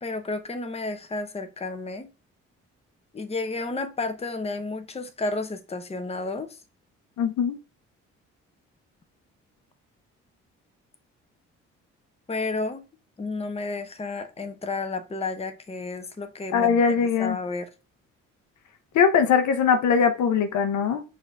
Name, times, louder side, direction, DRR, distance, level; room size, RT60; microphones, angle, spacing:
voice 1, 0.0-2.1 3.1-6.6 12.3-12.8 13.2-16.8 17.2-17.7, left 3 dB, 20° left, 0.8 m, -31 dB
voice 2, 7.2-7.6 16.5-17.4 18.9-21.0, left 6 dB, 70° left, 0.8 m, -21 dB
5.4 x 2.8 x 3.5 m
supercardioid pair, 60°, 30 cm